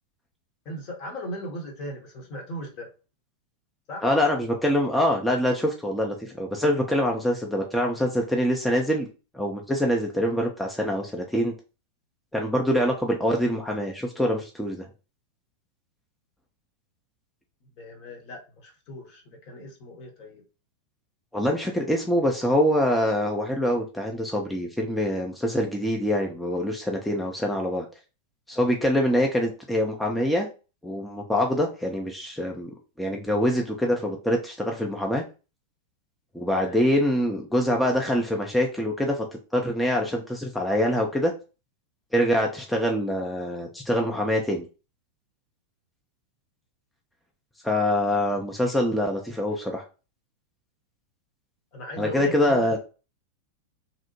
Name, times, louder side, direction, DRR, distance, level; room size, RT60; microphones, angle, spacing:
voice 1, 0.6-2.9 3.9-4.1 17.7-20.4 36.5-36.8 51.7-52.8, equal, 40° left, 2 dB, 0.8 m, -38 dB
voice 2, 4.0-9.1 9.3-11.5 12.3-14.9 21.3-27.9 28.5-30.5 30.8-35.2 36.3-39.3 39.5-41.3 42.1-44.7 47.6-49.8 52.0-52.8, equal, 5° left, 0 dB, 0.4 m, -25 dB
2.7 x 2.0 x 2.8 m, 0.33 s
figure-of-eight pair, 90°, 0 cm